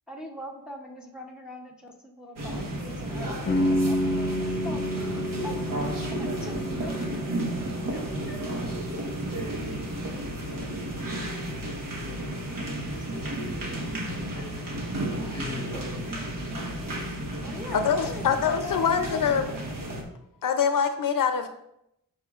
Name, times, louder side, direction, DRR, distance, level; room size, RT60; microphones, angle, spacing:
voice 1, 0.1-5.6 6.1-7.4 7.9-8.6 12.6-13.8 17.4-19.6, left 2 dB, ahead, -1 dB, 0.8 m, -43 dB
sound 1, 2.4-20.0, right 1 dB, 65° right, 1.4 m, -33 dB
sound 2, 2.6-3.4 3.7-5.3 5.6-7.1 7.5-7.9 8.1-10.0, right 3 dB, 50° right, 0.9 m, -44 dB
sound 3, 3.5-9.2, equal, 35° left, 0.8 m, -30 dB
voice 2, 13.9-14.5 15.1-16.5, left 2 dB, 15° left, 2 dB, 1.2 m, -40 dB
voice 3, 17.7-19.4 20.4-21.5, left 7 dB, 70° left, 8 dB, 0.6 m, -24 dB
12.5 x 5.0 x 2.4 m, 0.82 s
wide cardioid pair, 150°, 35 cm